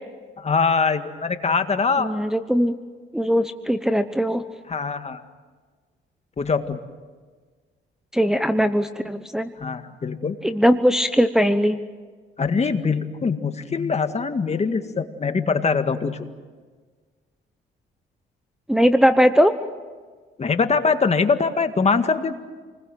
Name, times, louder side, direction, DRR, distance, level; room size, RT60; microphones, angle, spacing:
voice 1, 0.4-2.1 4.7-5.2 6.4-6.8 9.6-10.4 12.4-16.3 20.4-22.4, left 4 dB, 35° left, 8 dB, 1.9 m, -23 dB
voice 2, 2.0-2.7 3.1-4.4 8.1-9.5 10.4-11.8 18.7-19.5, equal, 5° right, 8 dB, 0.9 m, -19 dB
28.5 x 20.5 x 7.8 m, 1.5 s
cardioid pair, 90°, 20 cm